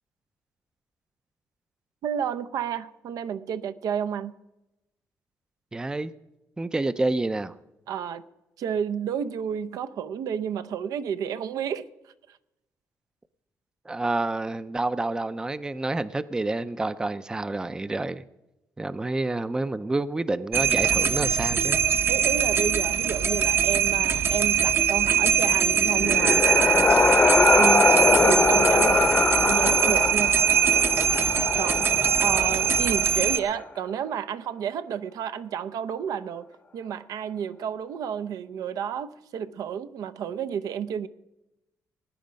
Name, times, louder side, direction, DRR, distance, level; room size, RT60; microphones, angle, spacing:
voice 1, 2.0-4.3 7.9-8.2 8.6-11.8 12.3-12.4 22.1-26.9 27.5-28.0 28.2-30.4 31.6-36.5 36.7-41.1, right 8 dB, 80° right, 12 dB, 0.7 m, -31 dB
voice 2, 5.7-6.1 6.6-7.5 13.9-18.2 18.8-21.8 32.3-32.4, right 2 dB, 10° right, 14 dB, 0.4 m, -28 dB
sound 1, 20.5-33.4, right 8 dB, 40° right, 0.8 m, -22 dB
sound 2, 25.6-33.4, left 4 dB, 25° left, 0.7 m, -23 dB
18.5 x 9.7 x 5.2 m, 0.95 s
cardioid pair, 135°, 6 cm